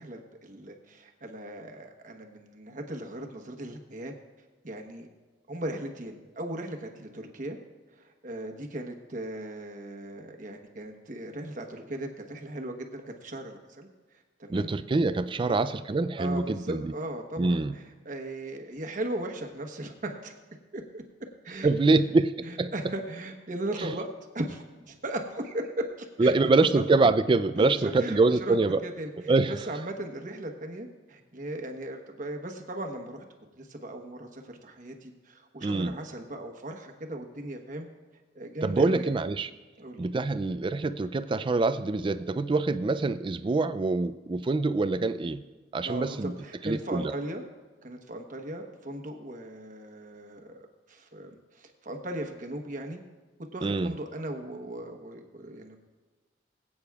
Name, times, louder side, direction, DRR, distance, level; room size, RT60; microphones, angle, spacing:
voice 1, 0.0-4.1 4.6-5.1 5.5-7.6 8.0-13.9 14.4-14.7 15.5-15.6 16.2-20.3 20.7-21.0 21.4-22.2 22.4-26.3 26.7-26.9 27.6-33.2 33.6-37.9 38.3-39.1 39.8-40.0 45.8-47.4 47.8-53.0 53.5-55.8, right 1 dB, 45° right, 3 dB, 1.1 m, -37 dB
voice 2, 14.5-16.9 17.4-17.7 21.6-22.3 22.6-22.7 23.8-23.9 26.2-28.8 29.2-29.6 35.6-36.0 38.6-39.5 40.0-45.4 45.7-46.3 46.6-47.1 53.6-53.9, right 3 dB, 25° right, 12 dB, 0.3 m, -25 dB
21.0 x 8.6 x 2.4 m, 1.3 s
head